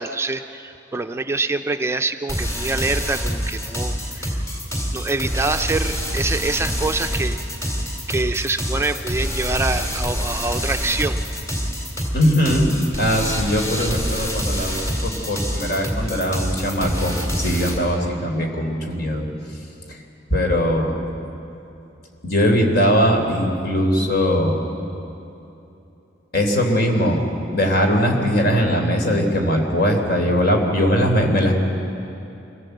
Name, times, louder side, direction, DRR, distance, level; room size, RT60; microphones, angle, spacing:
voice 1, 0.0-4.4 4.9-7.4 8.1-11.2, right 3 dB, 15° right, 7 dB, 0.5 m, -25 dB
sound 1, 2.3-17.8, equal, 15° left, 2.9 m, -26 dB
voice 2, 12.1-19.6 19.9-20.0 20.3-21.0 22.2-24.6 26.3-27.2 27.5-31.5, equal, 60° left, 3 dB, 3.4 m, -20 dB
26.0 x 17.0 x 7.9 m, 2.8 s
head